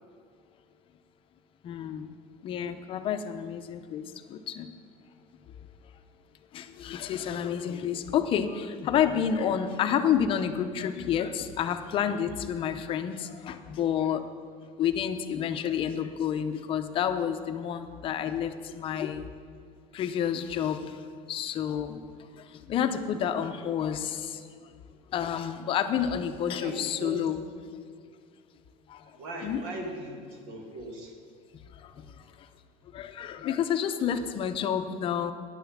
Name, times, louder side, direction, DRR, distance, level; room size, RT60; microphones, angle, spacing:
voice 1, 1.6-2.1 2.4-4.7 6.5-14.2 14.8-19.3 19.9-21.0 21.3-22.0 22.4-24.4 25.1-27.4 28.9-29.1 29.4-29.6 31.8-32.0 32.4-32.5 32.9-35.3, left 8 dB, 40° left, 9 dB, 0.6 m, -29 dB
voice 2, 26.5-27.1 29.2-31.1, right 1 dB, 85° right, 2 dB, 2.2 m, -39 dB
9.9 x 7.3 x 7.2 m, 2.1 s
cardioid pair, 155°, 14 cm